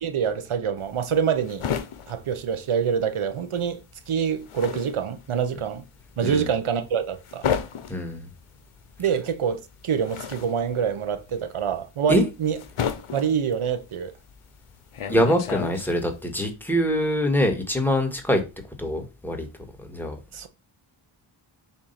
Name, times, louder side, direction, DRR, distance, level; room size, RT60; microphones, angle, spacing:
voice 1, 0.0-1.7 2.1-5.8 6.2-7.5 9.0-12.6 13.1-14.1 20.3-20.5, right 7 dB, 80° right, 1.0 m, -26 dB
sound 1, 0.8-3.3 3.6-16.2, left 8 dB, 85° left, 0.9 m, -33 dB
voice 2, 7.9-8.3 12.1-12.2 15.1-18.4 18.8-19.5 19.9-20.2, equal, 5° left, 1.7 m, -24 dB
7.3 x 2.7 x 5.7 m
wide cardioid pair, 80°, 49 cm